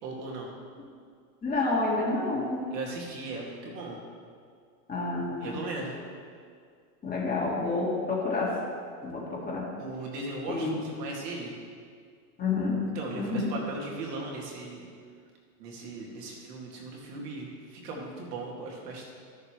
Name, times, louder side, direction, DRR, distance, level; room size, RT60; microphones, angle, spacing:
voice 1, 0.0-0.5 2.7-4.0 5.4-6.0 9.8-11.6 12.9-14.9 15.6-19.1, right 2 dB, 70° right, -2 dB, 2.3 m, -38 dB
voice 2, 1.4-2.6 4.9-5.6 7.0-8.5 9.0-9.7 10.5-10.8 12.4-12.9 13.2-13.5, left 3 dB, 20° left, -4 dB, 1.9 m, -29 dB
13.5 x 6.8 x 3.2 m, 2.1 s
supercardioid pair, 130°, 49 cm